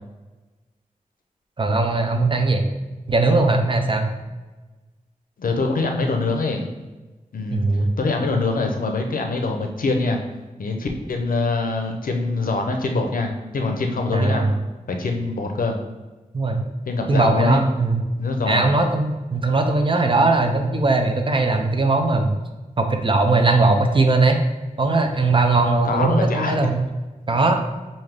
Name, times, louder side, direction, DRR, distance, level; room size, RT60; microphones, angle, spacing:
voice 1, 1.6-2.7 3.1-4.1 7.5-7.9 14.1-14.5 16.3-16.6 17.1-18.0 18.5-22.3 22.8-24.4 24.8-26.9 27.3-27.6, right 3 dB, 35° right, 5 dB, 0.4 m, -19 dB
voice 2, 5.4-6.7 7.3-7.6 8.0-10.2 10.6-14.5 14.9-15.8 16.9-17.6 18.2-18.7 25.8-26.5 27.3-27.4, left 3 dB, 80° left, 3 dB, 0.5 m, -24 dB
3.3 x 2.6 x 3.6 m, 1.2 s
wide cardioid pair, 85°, 14 cm